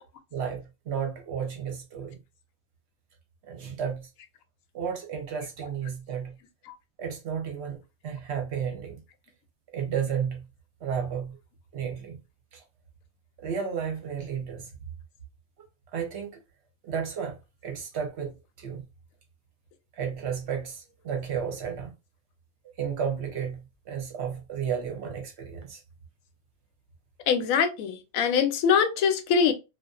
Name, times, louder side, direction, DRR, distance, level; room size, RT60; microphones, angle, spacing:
voice 1, 0.3-2.2 3.5-4.1 4.7-6.3 7.0-7.8 8.0-9.0 9.7-10.4 10.8-11.4 11.7-12.2 12.5-12.6 13.4-14.7 15.9-16.3 16.8-17.4 17.6-18.3 18.6-18.8 20.0-21.9 22.8-23.6 23.9-25.8, right 7 dB, 60° right, 0.8 m, -32 dB
voice 2, 27.3-29.5, left 6 dB, 90° left, 1.0 m, -23 dB
2.5 x 2.3 x 2.3 m
omnidirectional pair, 1.4 m